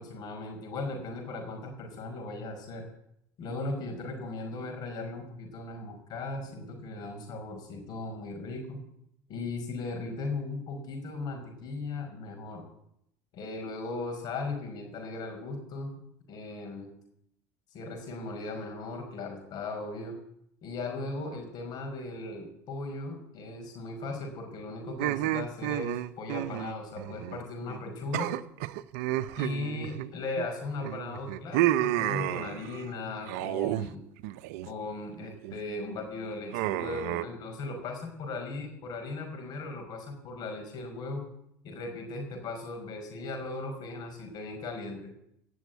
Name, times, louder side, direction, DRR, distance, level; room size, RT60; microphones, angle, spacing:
voice 1, 0.0-2.9 3.4-8.8 9.3-12.6 13.3-15.9 16.3-16.9 17.7-20.2 20.6-28.3 29.4-34.0 34.6-41.3 41.6-45.1, left 3 dB, 50° left, 4 dB, 5.3 m, -37 dB
sound 1, 25.0-27.4 27.7-27.8 28.1-30.5 30.8-32.8 33.2-33.9 34.2-34.7 35.1-35.6 36.5-37.2, right 15 dB, 75° right, 0.7 m, -31 dB
17.5 x 7.1 x 9.4 m, 0.75 s
supercardioid pair, 110°, 9 cm